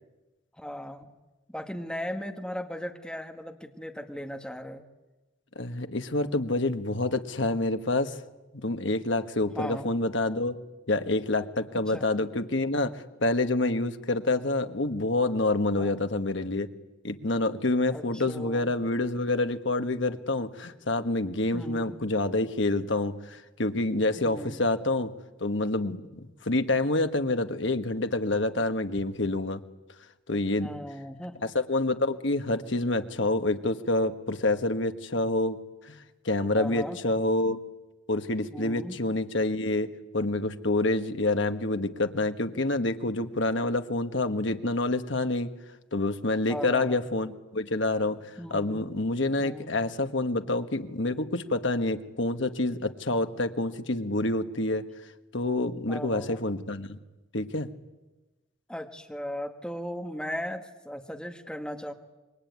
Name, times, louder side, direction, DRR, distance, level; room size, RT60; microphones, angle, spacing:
voice 1, 0.6-1.1 1.5-4.8 9.5-9.9 11.7-12.1 15.7-16.0 17.9-18.7 21.5-22.0 24.1-24.6 30.6-31.4 36.5-37.0 38.5-39.0 46.5-47.0 48.4-48.9 49.4-49.8 55.9-56.4 58.7-61.9, equal, 5° left, 5 dB, 1.6 m, -37 dB
voice 2, 5.5-8.2 8.5-10.5 10.9-16.7 17.0-25.1 25.4-29.6 30.3-30.7 31.4-35.6 35.8-36.0 36.2-37.6 38.1-45.5 45.9-54.8 55.3-57.0 57.3-57.7, left 2 dB, 65° left, 8 dB, 1.5 m, -27 dB
27.0 x 23.0 x 9.5 m, 1.1 s
head